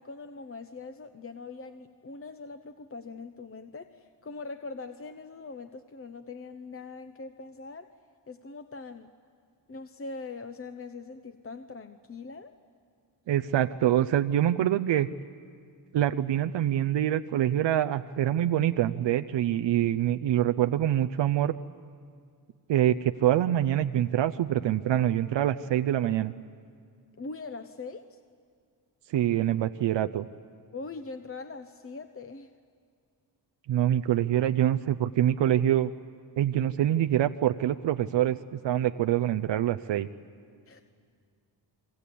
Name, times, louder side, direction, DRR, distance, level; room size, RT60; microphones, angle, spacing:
voice 1, 0.0-7.9 8.3-9.1 9.7-12.6 27.2-28.2 30.7-32.5 40.7-40.8, left 4 dB, 30° left, 8 dB, 0.9 m, -42 dB
voice 2, 13.3-15.1 15.9-21.5 22.7-26.3 29.1-30.3 33.7-35.9 36.4-40.1, right 11 dB, 85° right, 10 dB, 0.6 m, -25 dB
28.0 x 22.5 x 8.5 m, 2.2 s
cardioid pair, 70°, 42 cm